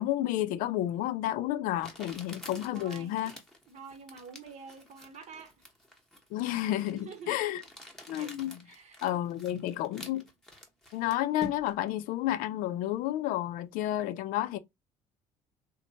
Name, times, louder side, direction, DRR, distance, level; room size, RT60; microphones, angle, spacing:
voice 1, 0.0-3.3 6.3-7.6 8.1-8.6 9.0-10.2 10.9-14.6, left 13 dB, 75° left, 0.4 m, -31 dB
Crumpling crinkling, 0.9-1.0 1.8-11.9, left 1 dB, 5° left, 0.9 m, -49 dB
voice 2, 2.7-3.2 3.7-5.5 7.0-7.4 8.1-8.3 8.6-9.2, right 5 dB, 55° right, 1.0 m, -47 dB
3.0 x 2.1 x 2.6 m
supercardioid pair, 85°, 14 cm